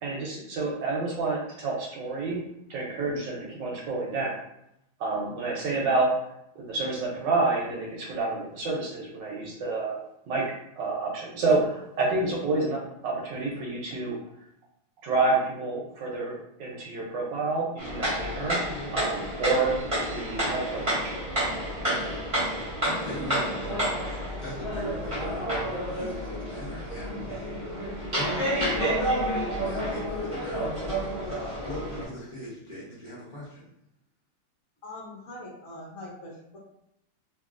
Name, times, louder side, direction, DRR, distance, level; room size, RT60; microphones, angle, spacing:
voice 1, 0.0-2.4 2.7-4.4 5.0-6.1 6.6-10.0 10.3-10.4 10.8-14.2 15.0-18.6 18.9-19.7 20.1-21.1, right 3 dB, 70° right, -2 dB, 1.2 m, -28 dB
sound 1, 17.8-32.0, right 1 dB, 25° right, 0.8 m, -30 dB
voice 2, 22.4-24.0 24.4-27.5 28.1-29.0 29.5-33.7, left 1 dB, 80° left, -8 dB, 0.3 m, -40 dB
voice 3, 34.8-36.6, left 1 dB, 65° left, -4 dB, 0.8 m, -42 dB
2.9 x 2.8 x 2.4 m, 0.79 s
omnidirectional pair, 2.2 m